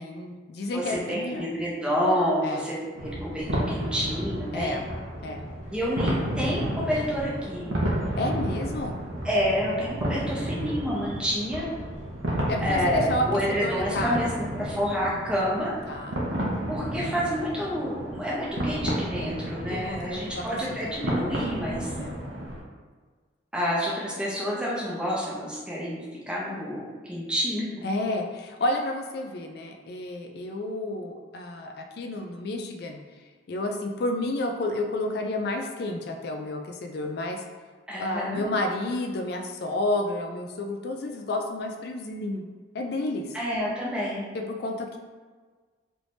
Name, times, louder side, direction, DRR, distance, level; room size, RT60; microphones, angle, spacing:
voice 1, 0.0-1.5 2.4-2.6 4.5-4.8 5.2-5.4 8.2-9.0 12.5-14.2 15.9-16.2 19.7-20.4 20.8-21.1 21.8-22.2 27.8-33.0 33.5-37.4 38.0-42.4 42.7-43.3 44.3-45.0, left 1 dB, 55° left, 3 dB, 0.4 m, -31 dB
voice 2, 0.7-2.8 3.0-4.8 5.7-7.7 9.2-11.7 12.6-15.8 16.7-21.9 23.5-26.0 26.3-27.7 37.9-38.5 43.3-44.3, equal, 5° right, -6 dB, 0.6 m, -28 dB
sound 1, 2.9-22.6, right 1 dB, 90° right, 0.8 m, -32 dB
3.3 x 3.1 x 2.6 m, 1.4 s
head